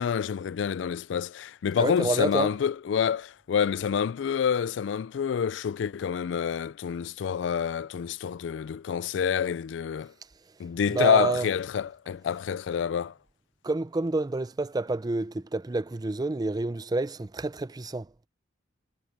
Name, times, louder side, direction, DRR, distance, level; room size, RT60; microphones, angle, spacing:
voice 1, 0.0-10.1 10.6-13.1, left 7 dB, 75° left, 0.3 m, -27 dB
voice 2, 1.8-2.5 10.9-11.5 13.6-18.1, right 2 dB, 20° right, 0.4 m, -28 dB
head